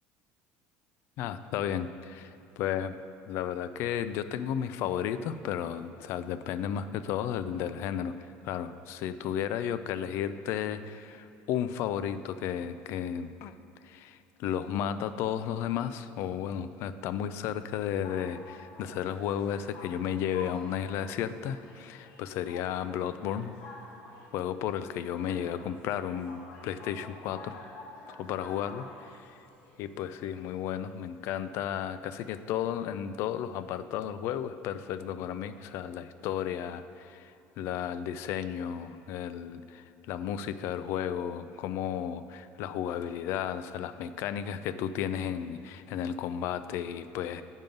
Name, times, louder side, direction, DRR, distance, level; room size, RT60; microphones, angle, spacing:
voice 1, 1.2-3.0 3.3-13.6 13.8-23.6 24.3-27.6 28.1-29.4 29.8-47.4, left 9 dB, 55° left, 12 dB, 0.3 m, -33 dB
sound 1, 17.8-32.6, left 2 dB, 80° left, 1.4 m, -50 dB
9.1 x 5.4 x 5.2 m, 2.7 s
cardioid pair, 160°, 5 cm